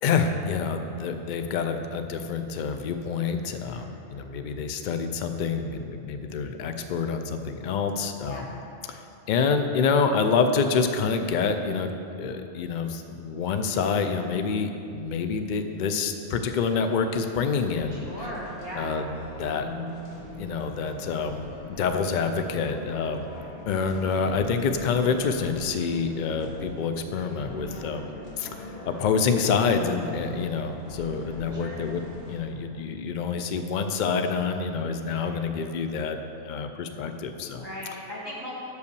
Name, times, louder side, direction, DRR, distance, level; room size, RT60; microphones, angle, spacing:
voice 1, 0.0-8.6 8.9-9.0 9.3-11.9 12.2-18.3 18.7-19.7 20.4-21.5 21.8-23.2 23.7-28.1 28.4-36.2 36.4-37.7, left 5 dB, 55° left, 7 dB, 0.6 m, -27 dB
voice 2, 3.5-4.5 8.2-8.5 17.9-18.9 27.6-27.9 31.5-31.8 35.1-35.4 37.6-38.6, equal, 20° left, -9 dB, 1.6 m, -40 dB
sound 1, 17.4-32.4, left 1 dB, 80° left, 1.6 m, -41 dB
6.4 x 5.4 x 6.8 m, 2.7 s
omnidirectional pair, 1.1 m